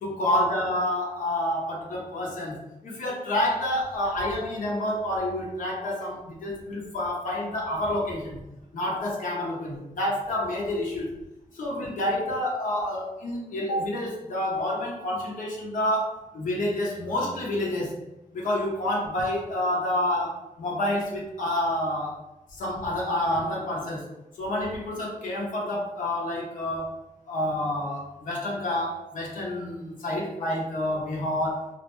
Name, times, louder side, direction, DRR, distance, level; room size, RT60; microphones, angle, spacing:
voice 1, 0.0-8.4 8.7-11.1 11.5-18.0 18.3-22.2 22.5-24.1 24.4-26.9 27.3-31.7, left 1 dB, 75° left, -3 dB, 0.7 m, -28 dB
2.4 x 2.1 x 3.0 m, 0.94 s
cardioid pair, 95°, 14 cm